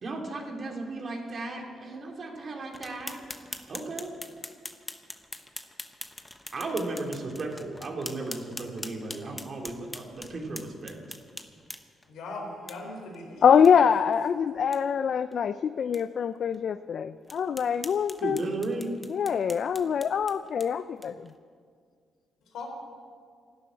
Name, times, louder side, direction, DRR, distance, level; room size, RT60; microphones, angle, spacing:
voice 1, 0.0-3.3 3.7-4.1 6.5-11.0 18.2-18.9, right 2 dB, 45° right, 2 dB, 2.6 m, -35 dB
sound 1, 2.7-12.1 12.7-12.8 13.1-13.2 13.6-13.7 14.1-14.2 14.6-14.8 15.3-15.4 15.9-16.0 16.5-16.6 17.3-21.3, left 1 dB, 10° left, 1.0 m, -43 dB
voice 2, 12.1-13.4 13.7-14.1 14.6-14.7 22.5-22.7, left 2 dB, 85° left, 1 dB, 3.9 m, -39 dB
voice 3, 13.4-18.4 19.1-21.3, left 7 dB, 55° left, 13 dB, 0.4 m, -24 dB
13.0 x 12.0 x 9.0 m, 2.1 s
cardioid pair, 110°, 0 cm